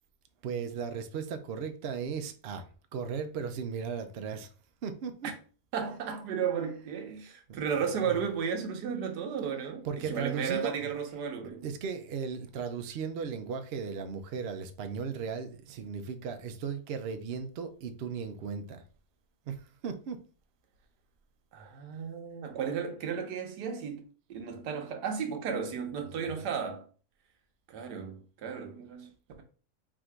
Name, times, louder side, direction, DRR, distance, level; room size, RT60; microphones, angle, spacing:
voice 1, 0.4-2.6 2.9-4.5 4.8-5.3 7.5-8.2 9.8-10.9 11.6-18.8 19.5-20.2 26.1-26.4, right 6 dB, 65° right, 0.6 m, -36 dB
voice 2, 5.7-11.6 21.5-24.0 24.3-26.8 27.7-29.1, right 7 dB, 85° right, 1.4 m, -34 dB
3.7 x 2.6 x 4.5 m
omnidirectional pair, 1.7 m